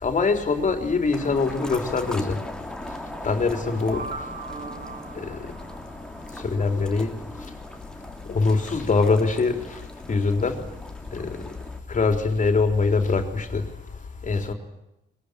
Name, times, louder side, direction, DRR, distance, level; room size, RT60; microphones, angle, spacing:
voice 1, 0.0-2.4 3.2-4.0 5.2-5.4 6.4-7.1 8.3-9.8 10.1-10.6 11.1-11.4 11.9-13.7 14.2-14.5, left 4 dB, 40° left, 4.0 m, -23 dB
sound 1, 1.1-11.8, left 1 dB, 5° left, 2.9 m, -39 dB
sound 2, 3.3-6.4, right 3 dB, 50° right, 3.8 m, -39 dB
22.0 x 20.0 x 10.0 m
cardioid pair, 90°, 20 cm